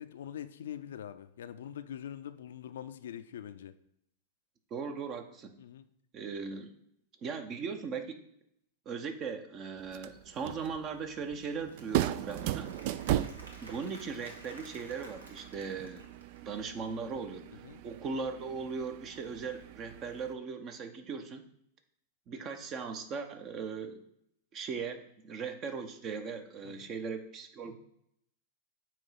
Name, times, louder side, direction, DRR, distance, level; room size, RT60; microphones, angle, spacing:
voice 1, 0.0-3.7 5.6-5.9 17.6-17.8 26.6-26.9, left 10 dB, 70° left, 11 dB, 0.5 m, -44 dB
voice 2, 4.7-5.6 6.1-6.7 7.2-8.2 8.9-12.7 13.6-16.0 16.4-17.5 17.8-21.4 22.3-24.0 24.5-27.8, right 5 dB, 35° right, 8 dB, 0.9 m, -38 dB
sound 1, 9.8-20.3, right 13 dB, 55° right, 0.3 m, -38 dB
Applause / Crowd, 11.2-16.6, right 1 dB, 80° right, 1.4 m, -54 dB
8.8 x 3.1 x 5.8 m, 0.72 s
hypercardioid pair, 95°, 0 cm